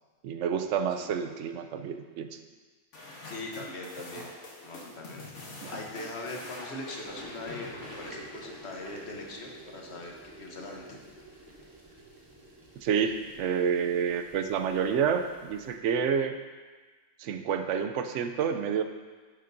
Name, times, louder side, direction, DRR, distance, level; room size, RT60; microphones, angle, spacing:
voice 1, 0.2-2.4 5.6-5.7 12.8-16.4 17.2-18.8, right 7 dB, 90° right, 8 dB, 0.9 m, -29 dB
sound 1, 2.9-9.5, left 2 dB, 85° left, 1.6 m, -46 dB
voice 2, 3.2-4.3 4.6-11.0, left 2 dB, 65° left, 0 dB, 1.3 m, -41 dB
sound 2, 7.0-15.8, right 1 dB, 20° right, 0.9 m, -49 dB
10.0 x 6.5 x 2.6 m, 1.4 s
omnidirectional pair, 1.2 m